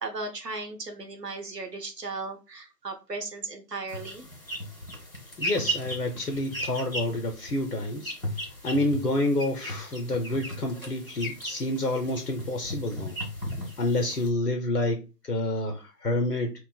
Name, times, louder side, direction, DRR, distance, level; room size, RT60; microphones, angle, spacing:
voice 1, 0.0-4.2, right 3 dB, 80° right, 4 dB, 0.8 m, -36 dB
sound 1, 3.9-14.3, equal, 55° left, 1.1 m, -36 dB
voice 2, 5.4-8.1 8.6-13.2 13.8-16.5, left 1 dB, 75° left, 4 dB, 0.6 m, -28 dB
3.0 x 2.0 x 2.3 m, 0.30 s
figure-of-eight pair, 180°, 48 cm